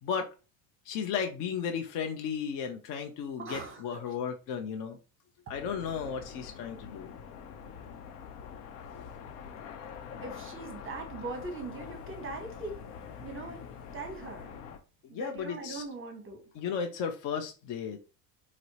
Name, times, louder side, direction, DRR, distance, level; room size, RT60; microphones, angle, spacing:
voice 1, 0.9-5.0 5.5-7.1 15.1-15.8 16.5-18.0, left 7 dB, 45° left, 0.5 m, -34 dB
voice 2, 3.4-4.0 10.2-12.8 13.2-13.6 13.9-14.6 15.1-16.4, right 3 dB, 25° right, 0.7 m, -40 dB
sound 1, 5.5-14.8, left 7 dB, 90° left, 0.7 m, -45 dB
4.2 x 2.0 x 2.7 m
supercardioid pair, 100°, 47 cm